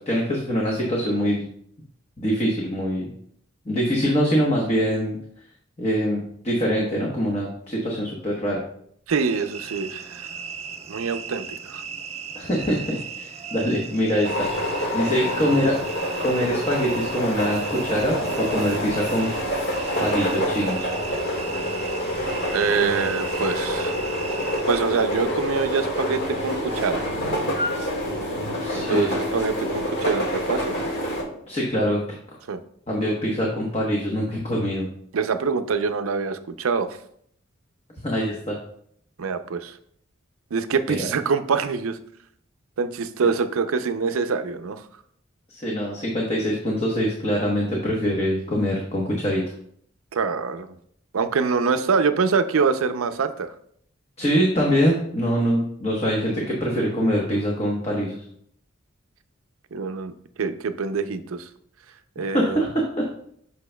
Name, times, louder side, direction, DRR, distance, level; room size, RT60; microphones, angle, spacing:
voice 1, 0.1-1.4 2.2-3.1 3.6-5.2 5.8-8.6 12.3-14.5 14.9-15.8 16.2-19.3 20.0-20.9 28.6-29.2 31.5-32.0 32.9-34.9 38.0-38.6 41.0-41.1 45.5-49.4 54.2-58.2 62.2-63.1, equal, 30° left, -3 dB, 1.0 m, -24 dB
sound 1, 9.1-24.8, right 6 dB, 30° right, 0.5 m, -37 dB
voice 2, 9.1-10.3 10.9-11.8 22.5-23.9 24.7-27.0 28.7-30.9 32.5-32.6 35.1-37.0 39.2-39.7 40.5-42.0 42.8-44.8 50.1-50.7 51.1-53.5 59.7-60.1 60.4-61.4 62.2-62.6, right 5 dB, 85° right, 10 dB, 0.5 m, -25 dB
sound 2, 14.2-31.2, equal, 60° left, 1.7 m, -27 dB
8.2 x 5.5 x 2.2 m, 0.66 s
head